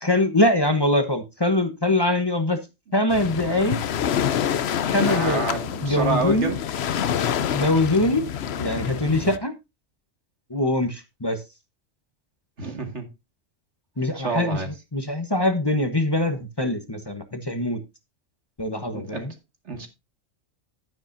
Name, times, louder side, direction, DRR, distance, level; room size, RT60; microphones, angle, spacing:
voice 1, 0.0-2.6 2.9-3.8 4.9-5.4 5.8-6.5 7.5-8.3 8.6-9.5 10.5-11.4 14.0-14.6 14.9-17.8 18.6-19.3, left 1 dB, 20° left, 1.0 m, -23 dB
Waves surf, 3.1-9.4, left 9 dB, 60° left, 0.9 m, -27 dB
voice 2, 5.1-6.6 12.6-13.1 14.1-14.7 18.9-19.3 19.7-19.9, right 3 dB, 65° right, 2.6 m, -28 dB
11.5 x 10.0 x 2.7 m
omnidirectional pair, 1.3 m